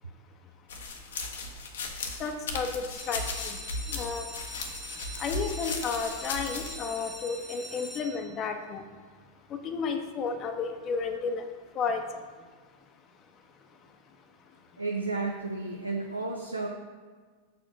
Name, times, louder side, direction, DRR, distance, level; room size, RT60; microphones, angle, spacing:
sound 1, 0.7-6.7, left 3 dB, 60° left, 1.1 m, -36 dB
voice 1, 2.2-3.6 3.9-4.3 5.2-8.8 9.6-11.4 11.7-12.0, left 5 dB, 30° left, 5 dB, 1.0 m, -32 dB
sound 2, 3.0-8.6 9.2-9.7 10.1-10.2 10.4-10.5 10.9-11.1, equal, 5° left, 1.2 m, -43 dB
voice 2, 14.8-16.7, right 3 dB, 85° right, 1 dB, 0.7 m, -32 dB
7.0 x 4.9 x 6.0 m, 1.5 s
figure-of-eight pair, 90°, 0 cm